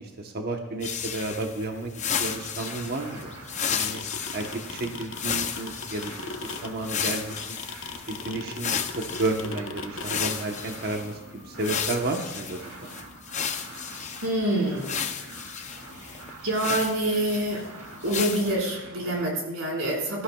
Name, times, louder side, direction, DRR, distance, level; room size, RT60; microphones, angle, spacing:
voice 1, 0.0-4.0 4.3-6.2 6.4-7.4 8.1-12.7, right 2 dB, 45° right, 3 dB, 1.0 m, -32 dB
sound 1, 0.8-9.5 10.0-11.1 11.6-14.3 14.8-17.6 18.0-18.5, left 7 dB, 35° left, 0.7 m, -33 dB
sound 2, 2.0-19.3, right 2 dB, 85° right, 2.9 m, -45 dB
sound 3, 3.8-10.3, left 4 dB, 65° left, 0.8 m, -37 dB
voice 2, 14.2-14.9 16.4-17.6 18.0-20.2, right 1 dB, 70° right, -2 dB, 4.3 m, -26 dB
17.5 x 13.0 x 2.3 m, 1.0 s
head